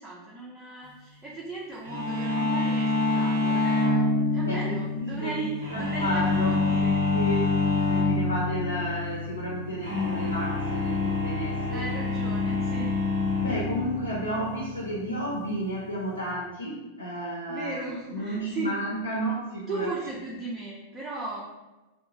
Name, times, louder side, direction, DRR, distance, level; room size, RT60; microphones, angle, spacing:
voice 1, 0.0-7.0 11.7-13.0 17.5-18.7 19.7-21.4, right 3 dB, 20° right, -5 dB, 0.4 m, -36 dB
sound 1, 1.8-16.3, left 3 dB, 80° right, 1.1 m, -27 dB
voice 2, 4.4-6.6 7.1-11.9 13.4-17.8 18.1-19.9, right 1 dB, 80° left, -4 dB, 0.5 m, -32 dB
2.7 x 2.2 x 2.7 m, 1.1 s
figure-of-eight pair, 90°, 0 cm